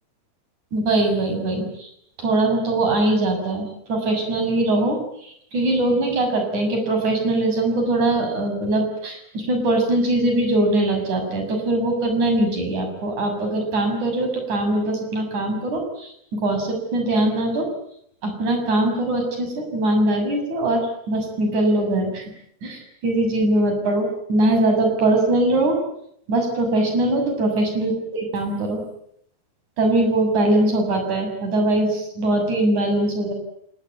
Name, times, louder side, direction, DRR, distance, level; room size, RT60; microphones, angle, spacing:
voice 1, 0.7-1.9 2.2-17.7 18.2-22.2 22.6-25.8 26.3-28.8 29.8-33.3, right 1 dB, 45° right, 4 dB, 8.0 m, -21 dB
26.0 x 20.5 x 9.6 m, 0.70 s
omnidirectional pair, 4.8 m